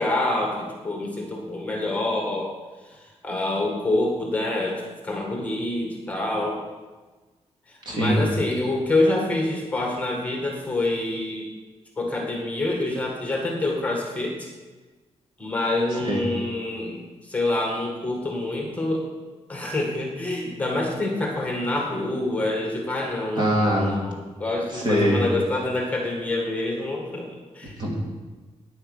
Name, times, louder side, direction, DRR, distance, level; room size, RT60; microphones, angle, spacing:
voice 1, 0.0-2.5 2.9-6.6 7.7-11.5 12.0-14.5 15.4-19.1 19.5-27.8, left 2 dB, 10° left, -1 dB, 1.8 m, -26 dB
voice 2, 7.9-8.2 16.0-16.2 23.4-23.9 24.7-25.2 27.8-28.0, equal, 40° right, -2 dB, 2.6 m, -22 dB
9.7 x 9.6 x 6.6 m, 1.3 s
wide cardioid pair, 160°, 11 cm